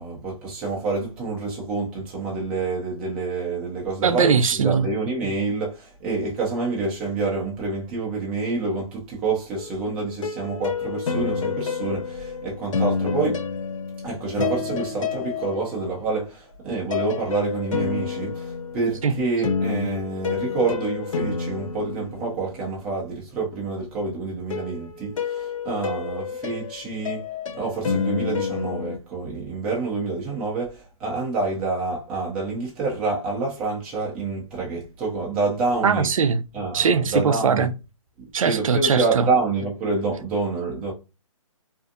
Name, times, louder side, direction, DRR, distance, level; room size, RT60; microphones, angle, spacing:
voice 1, 0.0-13.4 14.0-27.3 27.5-36.1 36.5-37.7 38.2-40.9, right 3 dB, 5° right, 0.3 m, -27 dB
voice 2, 4.0-4.9 19.0-19.1 35.8-36.4 36.7-37.7 38.3-39.3, right 6 dB, 70° right, 0.4 m, -20 dB
sound 1, 9.6-16.2 16.9-22.8 24.5-29.0, left 5 dB, 65° left, 0.6 m, -29 dB
2.5 x 2.4 x 2.5 m
hypercardioid pair, 155°, 18 cm